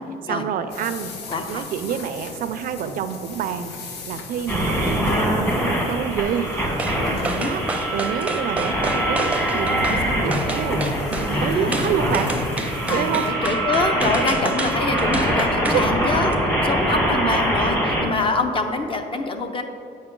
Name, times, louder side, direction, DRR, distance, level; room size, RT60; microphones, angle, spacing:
voice 1, 0.2-1.1 1.5-6.5 7.4-7.7 7.9-12.3 12.8-13.3 15.7-15.9 17.1-17.4, right 8 dB, 55° right, 10 dB, 0.4 m, -28 dB
sound 1, 0.7-13.3, left 4 dB, 80° left, 0.9 m, -40 dB
voice 2, 1.3-1.7 7.0-7.5 11.3-11.8 12.9-16.3 16.6-19.6, left 3 dB, 30° left, 6 dB, 0.7 m, -25 dB
sound 2, 4.5-18.0, right 1 dB, 15° left, 1.3 m, -23 dB
sound 3, 6.8-7.0 7.2-10.0 10.3-11.3 11.7-15.9 16.2-16.3, right 2 dB, 10° right, 0.6 m, -28 dB
8.0 x 5.2 x 3.7 m, 2.7 s
cardioid pair, 110°, 17 cm